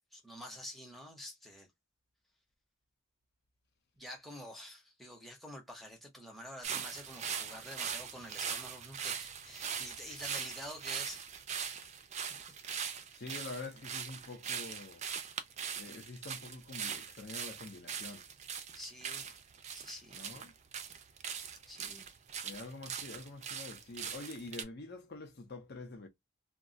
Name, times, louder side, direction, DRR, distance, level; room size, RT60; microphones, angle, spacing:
voice 1, 0.1-1.7 4.0-11.3 12.3-12.4 12.6-13.0 18.8-19.4 19.7-20.2 21.7-22.0, left 1 dB, ahead, 0.8 m, -48 dB
sound 1, 6.6-24.6, right 7 dB, 35° right, 0.4 m, -41 dB
voice 2, 13.2-15.0 15.8-18.3 20.1-20.5 22.4-26.1, left 3 dB, 50° left, 0.7 m, -46 dB
2.3 x 2.2 x 3.8 m
head